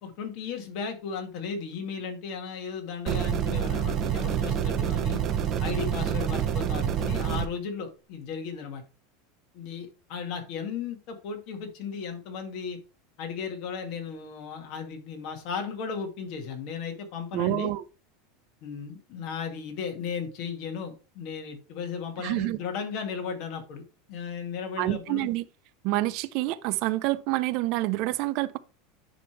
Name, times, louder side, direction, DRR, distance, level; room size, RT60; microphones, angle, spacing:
voice 1, 0.0-5.2 5.6-8.8 9.5-12.8 13.2-17.7 18.6-23.8 24.1-25.3, left 6 dB, 45° left, 1.9 m, -35 dB
sound 1, 3.1-7.5, right 9 dB, 30° right, 0.8 m, -27 dB
voice 2, 17.3-17.8 22.2-22.6 24.8-25.4 25.8-28.6, right 17 dB, 50° right, 0.4 m, -27 dB
9.9 x 3.4 x 4.5 m
supercardioid pair, 160°, 0 cm